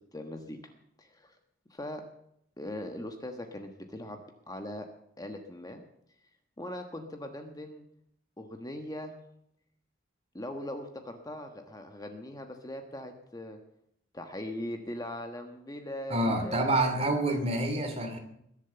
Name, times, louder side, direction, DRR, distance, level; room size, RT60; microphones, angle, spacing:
voice 1, 0.1-0.6 1.0-1.3 1.7-2.0 2.6-4.9 5.2-5.8 6.6-7.8 8.4-9.1 10.3-13.6 14.1-17.4, left 1 dB, 20° left, 5 dB, 1.3 m, -40 dB
voice 2, 16.1-18.2, right 2 dB, 30° right, 5 dB, 2.7 m, -27 dB
21.5 x 7.6 x 6.9 m, 0.72 s
head